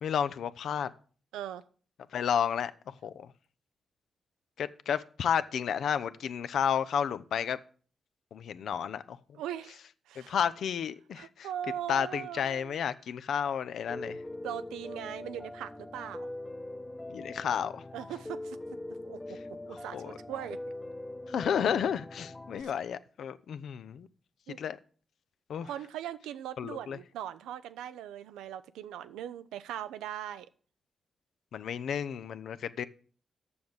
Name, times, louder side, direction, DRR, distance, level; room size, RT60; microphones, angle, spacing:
voice 1, 0.0-0.9 2.1-3.3 4.6-7.6 8.3-9.2 10.2-11.5 11.9-14.2 17.1-17.8 19.9-20.2 21.3-24.1 24.6-24.8 25.5-25.7 26.6-27.0 31.5-32.8, left 8 dB, 75° left, 0.5 m, -32 dB
voice 2, 1.3-1.6 9.3-9.8 10.1-10.4 11.1-12.8 14.4-16.3 17.9-18.6 19.0-19.2 19.7-20.6 22.6-22.7 24.5-24.6 25.6-30.5, right 10 dB, 90° right, 0.4 m, -40 dB
Piano, 13.9-22.6, left 1 dB, 20° left, 0.8 m, -42 dB
7.0 x 6.4 x 7.1 m
supercardioid pair, 45°, 0 cm